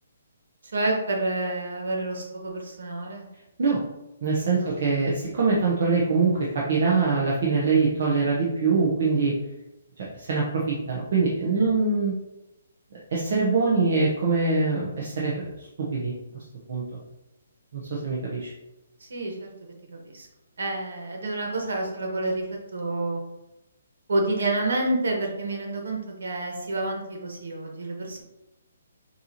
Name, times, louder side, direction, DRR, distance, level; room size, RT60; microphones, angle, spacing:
voice 1, 0.7-3.3 4.6-4.7 11.6-11.8 19.0-20.3 20.6-23.2 24.1-28.2, right 2 dB, 80° right, 1 dB, 1.3 m, -29 dB
voice 2, 4.2-9.4 10.0-12.1 13.1-16.1 16.7-16.8 17.7-18.5, right 4 dB, 40° right, -4 dB, 0.8 m, -24 dB
6.4 x 2.8 x 2.9 m, 0.93 s
hypercardioid pair, 175°, 0 cm